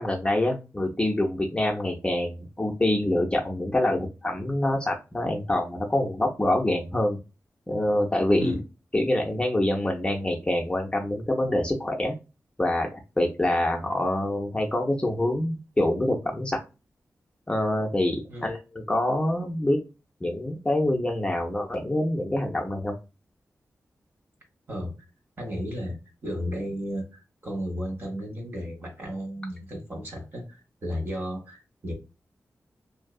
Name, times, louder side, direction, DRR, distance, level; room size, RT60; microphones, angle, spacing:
voice 1, 0.0-7.2 7.7-8.6 8.9-12.2 12.6-16.6 17.5-18.2 18.4-19.8 20.2-23.0, left 1 dB, 15° left, 0.6 m, -26 dB
voice 2, 25.4-26.0 26.2-31.9, equal, 40° right, 1.2 m, -34 dB
2.6 x 2.3 x 2.3 m
wide cardioid pair, 100°, 6 cm